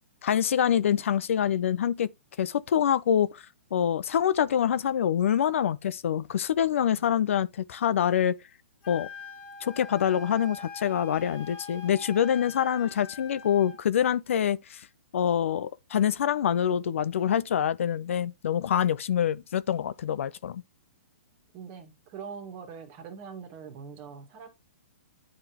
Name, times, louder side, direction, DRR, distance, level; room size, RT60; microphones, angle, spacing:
voice 1, 0.2-2.1 2.4-3.5 3.7-8.3 8.9-9.1 9.6-14.9 15.1-20.6, left 9 dB, 65° left, 0.5 m, -25 dB
voice 2, 6.9-7.2 21.5-24.5, right 6 dB, 35° right, 1.6 m, -43 dB
Wind instrument woodwind instrument, 8.8-13.8, left 4 dB, 40° left, 1.8 m, -43 dB
10.0 x 3.7 x 2.9 m
hypercardioid pair, 135°, 7 cm